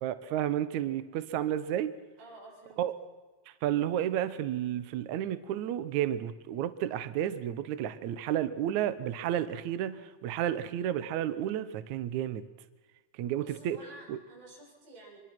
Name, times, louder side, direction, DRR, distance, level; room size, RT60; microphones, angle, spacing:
voice 1, 0.0-1.9 2.8-2.9 3.6-12.4 13.2-13.8 14.1-14.2, right 11 dB, 75° right, 12 dB, 1.8 m, -31 dB
voice 2, 2.2-2.8 13.4-15.2, right 2 dB, 90° right, -3 dB, 9.5 m, -51 dB
25.0 x 22.5 x 6.1 m, 1.3 s
omnidirectional pair, 4.7 m